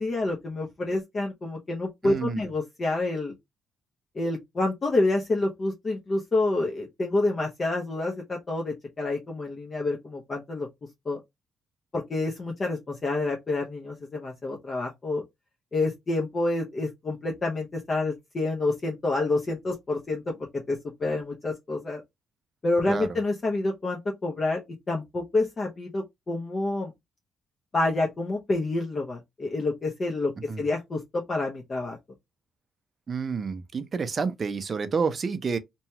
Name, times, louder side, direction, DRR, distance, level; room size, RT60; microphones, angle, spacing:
voice 1, 0.0-3.3 4.1-10.7 11.1-11.2 11.9-15.2 15.7-20.4 20.7-22.0 22.6-24.6 24.9-26.9 27.7-32.0, left 2 dB, 35° left, 0.7 m, -28 dB
voice 2, 2.0-2.5 22.9-23.2 30.5-30.6 33.1-35.6, right 5 dB, 40° right, 0.5 m, -29 dB
2.8 x 2.3 x 2.8 m
cardioid pair, 90°, 0 cm